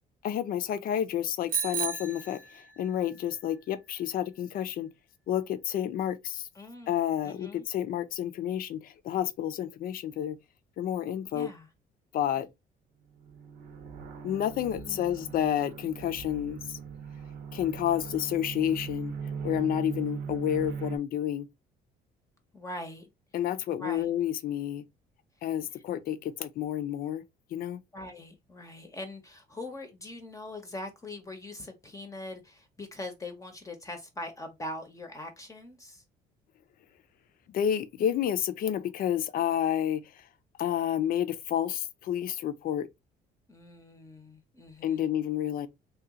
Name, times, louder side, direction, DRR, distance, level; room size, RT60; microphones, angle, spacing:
voice 1, 0.2-4.9 5.3-6.5 6.9-10.4 10.8-11.5 12.1-12.5 14.2-16.8 17.5-19.1 19.4-21.5 23.3-24.8 25.4-27.2 27.5-27.8 37.5-40.2 40.6-42.9 44.8-45.7, left 10 dB, 60° left, 0.5 m, -30 dB
Bicycle bell, 1.5-3.1, right 10 dB, 55° right, 0.6 m, -34 dB
voice 2, 6.5-7.7 11.3-11.7 12.4-12.5 14.7-15.4 22.5-23.1 23.8-24.1 25.7-25.8 27.9-36.0 43.5-45.1, left 1 dB, 20° left, 0.7 m, -42 dB
sound 1, 13.2-21.0, right 6 dB, 85° right, 0.8 m, -39 dB
2.9 x 2.3 x 3.6 m
cardioid pair, 110°, 17 cm